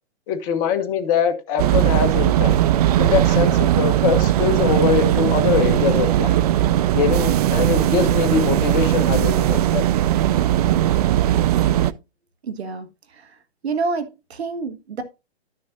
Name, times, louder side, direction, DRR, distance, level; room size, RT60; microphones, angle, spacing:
voice 1, 0.3-2.5 3.0-6.4 6.9-9.8, left 7 dB, 35° left, 1.2 m, -22 dB
sound 1, 1.6-11.9, right 12 dB, 35° right, 0.4 m, -18 dB
voice 2, 12.4-15.0, right 4 dB, 70° right, 1.6 m, -29 dB
12.5 x 6.5 x 2.6 m
hypercardioid pair, 130°, 33 cm